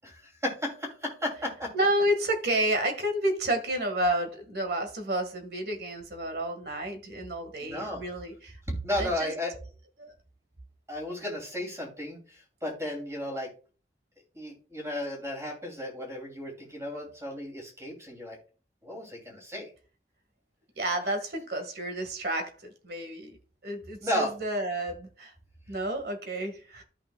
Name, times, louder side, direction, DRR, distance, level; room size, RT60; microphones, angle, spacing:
voice 1, 0.0-1.7 7.6-8.0 8.7-9.6 10.9-13.5 14.3-18.4 18.8-19.7 24.0-24.3, left 1 dB, 15° right, 2.8 m, -34 dB
voice 2, 1.7-8.6 9.0-9.3 10.0-10.1 20.8-23.4 23.6-25.3 25.7-26.8, right 1 dB, 60° right, 1.8 m, -30 dB
13.5 x 5.8 x 2.3 m
head